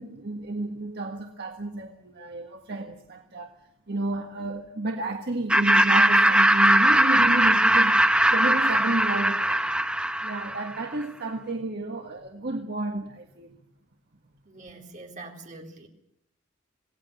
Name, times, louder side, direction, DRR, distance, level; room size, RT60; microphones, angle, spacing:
voice 1, 0.0-3.5 3.9-9.6 10.2-13.6, right 2 dB, 55° right, 1.7 m, -31 dB
Laughter, 5.5-10.8, right 1 dB, 5° right, 0.9 m, -20 dB
voice 2, 14.4-15.9, right 2 dB, 40° right, 3.9 m, -44 dB
27.0 x 18.5 x 6.9 m
head